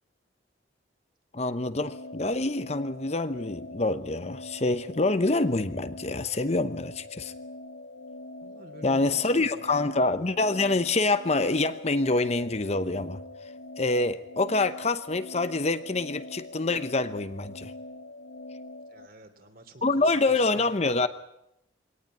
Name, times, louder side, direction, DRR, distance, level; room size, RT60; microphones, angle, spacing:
voice 1, 1.3-7.3 8.8-13.2 13.8-17.7 19.8-21.1, left 2 dB, 35° left, 12 dB, 0.8 m, -26 dB
sound 1, 1.7-19.1, left 2 dB, 80° left, 1.5 m, -43 dB
voice 2, 8.4-9.9 18.9-20.8, right 2 dB, 50° right, 7 dB, 3.0 m, -49 dB
23.0 x 18.0 x 9.6 m, 0.80 s
head